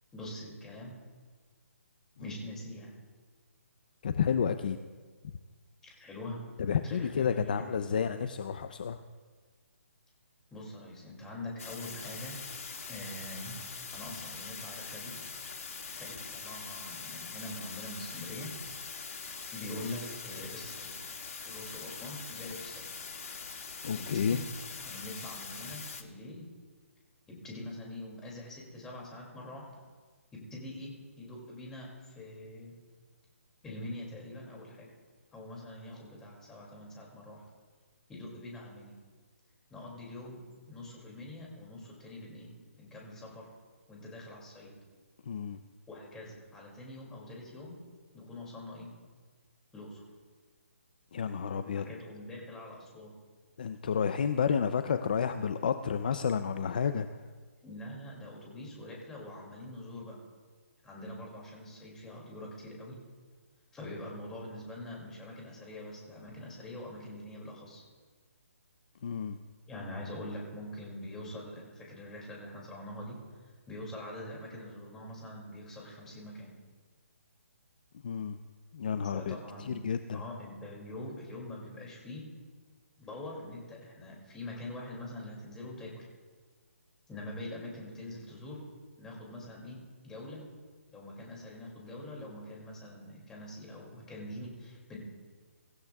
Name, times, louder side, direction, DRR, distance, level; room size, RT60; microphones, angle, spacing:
voice 1, 0.1-0.9 2.2-2.9 5.8-6.4 6.8-7.8 10.5-12.4 12.9-13.6 13.9-15.1 15.9-18.5 19.5-20.9 21.4-22.9 23.9-24.4 24.8-26.5 27.3-29.8 30.5-32.7 33.6-34.9 35.3-37.4 38.1-38.9 39.7-40.4 40.7-42.5 42.8-43.5 43.9-44.7 45.9-47.7 48.1-48.9 49.7-50.0 51.7-53.1 57.6-60.1 60.8-63.0 63.7-67.8 69.6-76.5 79.1-79.8 80.1-82.2 83.0-86.1 87.1-88.6 89.0-89.8 90.0-90.4 90.9-95.0, left 1 dB, 5° left, -2 dB, 2.5 m, -44 dB
voice 2, 4.0-4.8 6.6-9.0 23.8-24.4 45.3-45.6 51.1-51.9 53.6-57.1 69.0-69.4 78.0-78.4 78.7-80.2, left 7 dB, 35° left, 10 dB, 0.5 m, -31 dB
sound 1, 11.6-26.0, left 5 dB, 75° left, 2.0 m, -43 dB
23.5 x 14.5 x 2.4 m, 1.5 s
hypercardioid pair, 170°, 8 cm